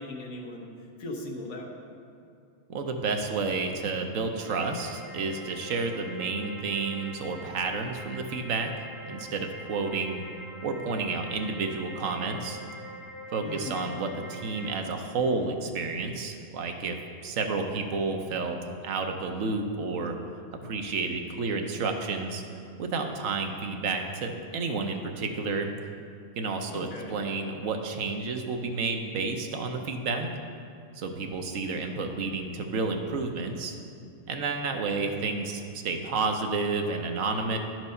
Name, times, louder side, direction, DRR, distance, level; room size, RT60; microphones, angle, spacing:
voice 1, 0.0-1.8 13.4-13.9 26.7-27.2, left 2 dB, 90° left, -1 dB, 1.4 m, -39 dB
voice 2, 2.7-8.7 9.1-10.2 10.6-12.6 13.3-17.0 17.2-18.6 18.8-20.2 20.6-22.4 22.8-25.7 26.4-30.3 31.0-33.8 34.3-37.6, right 4 dB, 85° right, 5 dB, 1.1 m, -30 dB
sound 1, 4.4-14.7, equal, 5° right, 2.2 m, -44 dB
11.5 x 4.6 x 5.4 m, 2.4 s
omnidirectional pair, 1.3 m